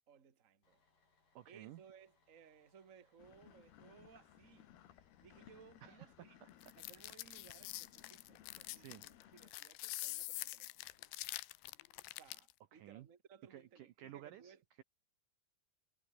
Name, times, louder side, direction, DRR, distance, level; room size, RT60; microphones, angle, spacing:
voice 1, 0.1-0.8 1.4-6.4 6.7-11.0 12.1-14.6, right 7 dB, 40° right, 1.1 m, -62 dB
Bus, 0.6-12.4, left 4 dB, 50° left, 8.5 m, -78 dB
voice 2, 1.4-1.8 5.8-6.1 6.4-6.5 6.9-7.0 8.8-9.0 12.7-13.1 13.5-14.8, right 13 dB, 80° right, 1.9 m, -54 dB
sound 1, 3.2-9.5, left 11 dB, 65° left, 3.5 m, -62 dB
sound 2, 6.6-12.5, left 19 dB, 90° left, 3.1 m, -46 dB
omnidirectional pair, 5.1 m